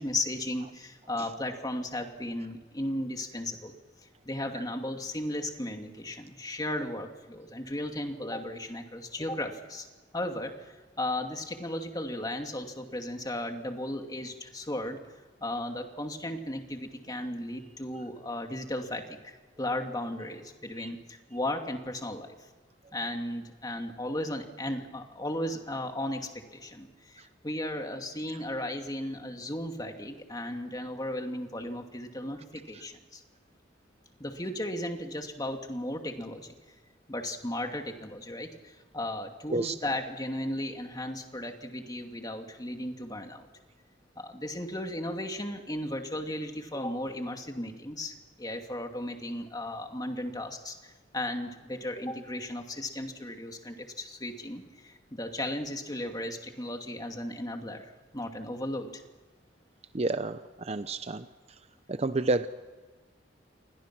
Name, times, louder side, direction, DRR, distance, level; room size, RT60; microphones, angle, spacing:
voice 1, 0.0-3.8 4.2-9.9 10.1-15.0 15.4-22.5 22.9-33.2 34.2-36.5 37.1-43.5 44.2-59.0, left 1 dB, 20° left, 4 dB, 2.4 m, -35 dB
voice 2, 59.9-60.4 60.7-61.2 61.9-62.5, right 2 dB, 35° right, 11 dB, 0.7 m, -29 dB
29.5 x 24.0 x 6.1 m, 1.3 s
head